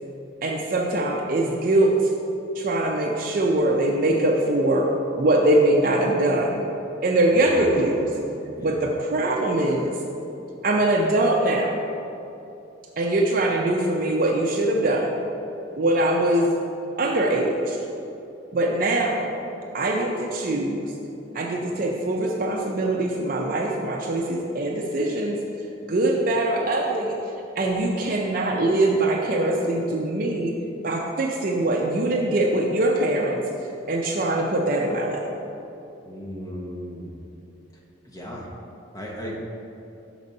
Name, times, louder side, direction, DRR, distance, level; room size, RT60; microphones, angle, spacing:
voice 1, 0.4-1.9 2.6-4.9 5.2-6.6 7.0-8.0 8.6-9.9 10.6-11.8 13.0-15.2 15.8-16.5 17.0-17.8 18.5-19.3 19.7-20.9 21.3-25.4 25.9-27.2 27.6-30.5 30.8-33.4 33.9-35.2, right 1 dB, 45° right, -1 dB, 0.5 m, -22 dB
voice 2, 36.1-37.1 38.1-38.4 38.9-39.4, equal, 15° left, -3 dB, 0.8 m, -35 dB
6.0 x 4.1 x 5.2 m, 2.8 s
head